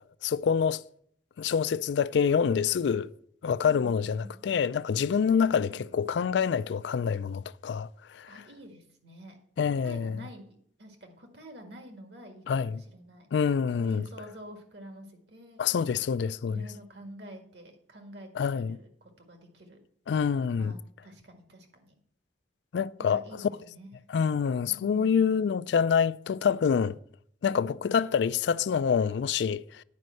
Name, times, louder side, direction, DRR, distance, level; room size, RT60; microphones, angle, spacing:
voice 1, 0.2-0.8 1.4-3.1 3.4-7.9 8.1-8.3 9.6-10.2 12.5-12.8 13.3-14.1 15.6-16.6 18.4-18.8 20.1-20.7 22.7-23.2 24.1-27.0 27.4-29.8, left 6 dB, 75° left, 0.3 m, -26 dB
voice 2, 3.6-4.3 5.3-5.9 8.3-9.4 9.6-13.3 13.8-15.9 16.5-19.8 20.3-22.0 23.0-23.9 24.7-25.5 27.5-27.7, equal, 65° right, 1.8 m, -48 dB
9.5 x 5.2 x 7.6 m
head